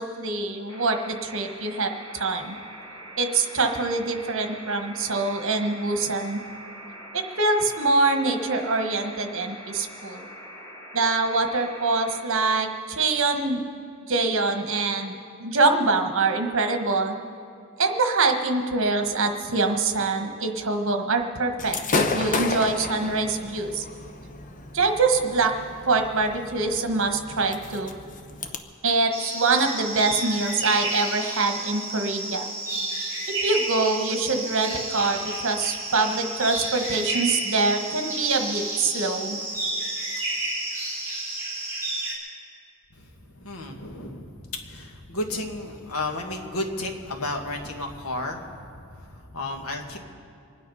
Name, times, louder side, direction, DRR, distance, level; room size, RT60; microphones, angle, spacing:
voice 1, 0.0-2.5 3.2-6.4 7.1-10.3 10.9-13.6 14.0-17.2 17.8-23.8 24.7-25.5 25.9-27.9 28.8-32.5 33.3-39.4, right 3 dB, 60° right, 5 dB, 1.3 m, -24 dB
sound 1, 0.7-12.2, right 1 dB, 15° left, 3.3 m, -43 dB
Gunshot gunfire / Fireworks, 21.6-28.6, left 3 dB, 35° left, 0.9 m, -32 dB
sound 2, 29.1-42.1, right 2 dB, 10° right, 3.3 m, -31 dB
voice 2, 42.9-50.0, left 2 dB, 75° left, 3 dB, 1.7 m, -33 dB
25.5 x 9.5 x 5.5 m, 2.4 s
head